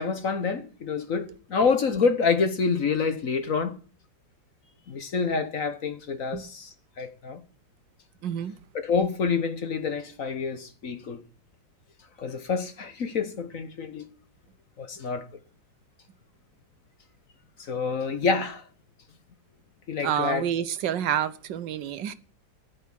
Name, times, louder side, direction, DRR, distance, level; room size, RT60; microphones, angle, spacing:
voice 1, 0.0-3.8 4.9-6.7 7.0-7.4 8.7-11.2 12.2-14.1 14.8-15.3 17.7-18.6 19.9-20.4, left 5 dB, 50° left, 1.3 m, -27 dB
voice 2, 8.2-8.5 20.0-22.1, right 9 dB, 75° right, 1.5 m, -28 dB
11.0 x 10.0 x 7.4 m
omnidirectional pair, 2.0 m